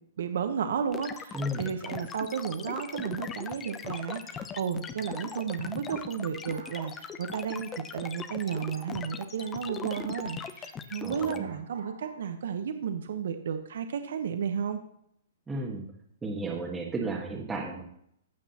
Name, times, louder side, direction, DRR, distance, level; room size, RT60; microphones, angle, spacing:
voice 1, 0.2-14.8, right 7 dB, 70° right, 8 dB, 0.9 m, -33 dB
sound 1, 0.9-11.4, left 6 dB, 15° left, 0.6 m, -39 dB
voice 2, 1.3-1.7 11.0-11.5 15.5-15.9 16.2-17.8, right 2 dB, 10° right, -3 dB, 1.3 m, -33 dB
sound 2, 6.2-10.7 11.4-12.2, right 5 dB, 90° right, 2.1 m, -50 dB
15.0 x 6.1 x 2.9 m, 0.71 s
hypercardioid pair, 145°, 0 cm